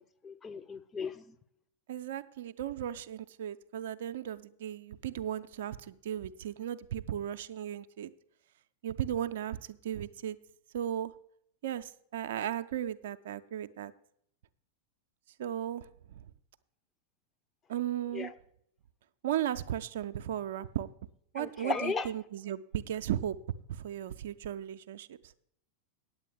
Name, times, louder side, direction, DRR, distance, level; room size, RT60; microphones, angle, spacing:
voice 1, 0.0-1.4 18.1-18.3 21.4-22.1, left 4 dB, 20° left, 9 dB, 0.6 m, -36 dB
voice 2, 1.9-8.1 8.8-10.4 10.7-11.1 11.6-13.9 15.4-15.9 17.7-18.3 19.2-20.9 21.3-23.4 23.7-25.2, right 11 dB, 55° right, 11 dB, 0.4 m, -36 dB
8.9 x 8.3 x 6.7 m, 0.70 s
figure-of-eight pair, 90°, 0 cm